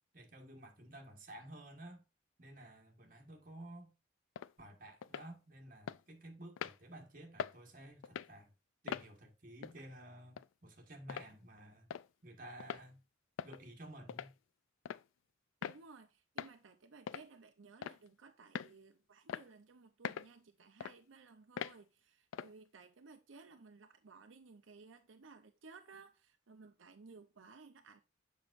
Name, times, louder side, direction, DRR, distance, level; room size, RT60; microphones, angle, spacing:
voice 1, 0.1-2.0 2.4-3.9 4.6-8.5 8.8-11.9 12.2-13.0 13.4-14.3, right 1 dB, 45° right, 1.6 m, -53 dB
sound 1, 4.4-4.5 5.0-5.3 5.9-6.0 6.6-6.8 7.4-7.6 8.0-8.3 8.9-9.1 9.6-9.8 10.4-10.5 11.1-11.3 11.9-12.1 12.6-12.8 13.4-13.6 14.1-14.3 14.9-15.1 15.6-15.8 16.4-16.5 17.1-17.3 17.8-18.1 18.6-18.7 19.3-19.5 20.0-20.3 20.8-21.0 21.6-21.8 22.3-22.5, left 8 dB, 90° left, 0.3 m, -42 dB
voice 2, 15.6-28.0, right 4 dB, 90° right, 0.7 m, -58 dB
7.1 x 5.7 x 2.5 m
head